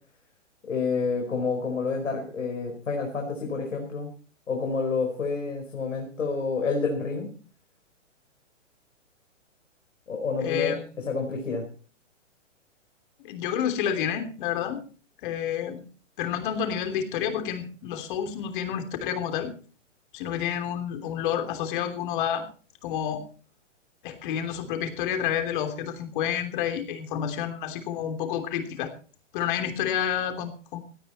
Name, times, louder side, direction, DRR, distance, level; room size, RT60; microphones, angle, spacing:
voice 1, 0.7-4.1 4.5-7.3 10.1-10.7 11.1-11.6, left 4 dB, 85° left, 2 dB, 4.8 m, -28 dB
voice 2, 10.4-10.9 13.2-14.8 15.2-15.8 16.2-19.5 20.1-22.4 22.8-23.2 24.0-28.9 29.3-30.8, left 9 dB, 40° left, 7 dB, 3.2 m, -29 dB
17.5 x 12.5 x 4.4 m, 0.39 s
hypercardioid pair, 140°, 37 cm